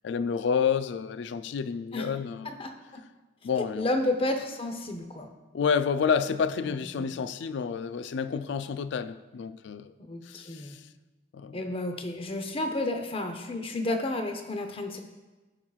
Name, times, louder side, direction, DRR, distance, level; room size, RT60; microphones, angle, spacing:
voice 1, 0.0-2.5 3.4-3.9 5.5-9.9 10.2-10.9 11.3-11.6, left 6 dB, 65° left, 0.3 m, -29 dB
voice 2, 2.4-3.0 3.8-5.3 6.6-7.1 10.0-10.8 11.5-15.0, left 2 dB, 30° left, 0.7 m, -31 dB
16.5 x 5.6 x 2.4 m
head